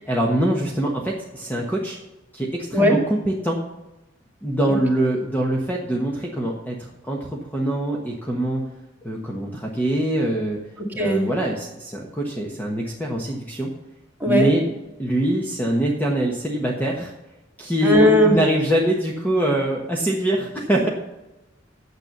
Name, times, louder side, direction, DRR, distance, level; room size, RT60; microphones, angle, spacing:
voice 1, 0.1-2.0 2.3-3.6 4.4-8.6 9.0-10.6 10.9-13.7 14.2-14.7 15.0-17.1 17.6-20.9, right 1 dB, 10° left, -2 dB, 1.2 m, -23 dB
voice 2, 14.2-14.5 17.8-18.4, equal, 10° right, -2 dB, 2.2 m, -17 dB
9.2 x 7.6 x 6.7 m, 0.99 s
head